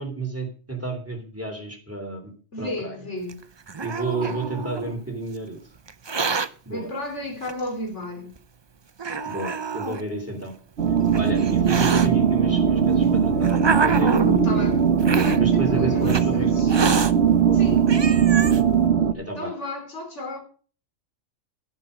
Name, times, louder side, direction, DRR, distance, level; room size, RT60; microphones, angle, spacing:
voice 1, 0.0-2.3 2.6-3.0 3.8-5.6 6.7-6.9 9.3-10.5 11.1-14.2 14.5-14.6 15.4-16.5 17.4-17.6 19.1-19.5, right 2 dB, 10° right, 3.3 m, -31 dB
voice 2, 2.5-3.4 4.2-4.4 6.7-8.3 14.4-16.8 17.5-18.3 19.4-20.4, left 1 dB, 60° left, 3.8 m, -34 dB
Hiss, 3.3-4.9 5.9-6.5 7.4-7.5 8.4-8.5 9.0-10.0 10.9-12.1 12.9-14.4 15.0-15.4 16.1-16.2 16.7-17.1 17.6-17.7 17.9-18.6, right 5 dB, 35° right, 0.4 m, -26 dB
sound 1, 10.8-19.1, right 7 dB, 60° right, 1.2 m, -20 dB
13.0 x 11.0 x 5.2 m
omnidirectional pair, 1.3 m